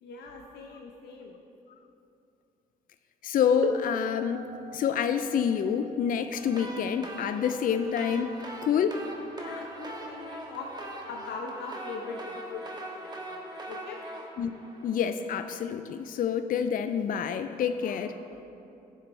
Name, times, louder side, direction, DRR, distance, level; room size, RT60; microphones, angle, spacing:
voice 1, 0.0-1.4 9.4-10.7 11.1-14.0 17.8-18.5, left 4 dB, 75° left, 1 dB, 0.7 m, -42 dB
voice 2, 3.2-4.5 4.7-8.4 8.6-9.0 14.4-14.6 14.8-18.1, left 7 dB, 50° left, 9 dB, 0.4 m, -27 dB
sound 1, 3.6-9.1 10.1-10.2 11.0-11.2, right 4 dB, 50° right, 0.8 m, -41 dB
sound 2, 6.3-15.4, right 1 dB, 25° right, 1.4 m, -42 dB
11.5 x 7.0 x 3.3 m, 2.8 s
supercardioid pair, 65°, 18 cm